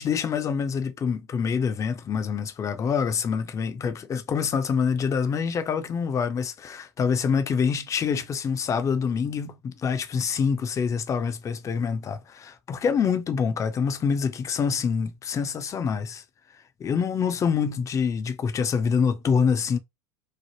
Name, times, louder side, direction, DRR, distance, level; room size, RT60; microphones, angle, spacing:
voice 1, 0.0-16.2 16.8-19.8, left 6 dB, 20° left, 0.4 m, -26 dB
3.1 x 2.0 x 2.9 m
hypercardioid pair, 95°, 15 cm